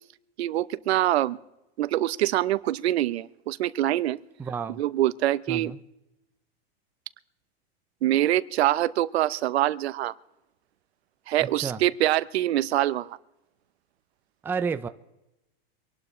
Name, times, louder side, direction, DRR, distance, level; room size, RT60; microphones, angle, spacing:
voice 1, 0.4-1.4 1.8-4.2 4.7-5.7 8.0-10.1 11.3-13.2, right 14 dB, 90° right, 16 dB, 0.8 m, -24 dB
voice 2, 4.4-4.8 5.5-5.8 11.4-11.8 14.4-14.9, right 5 dB, 5° right, 9 dB, 0.4 m, -31 dB
25.0 x 12.0 x 3.2 m, 0.94 s
supercardioid pair, 145°, 31 cm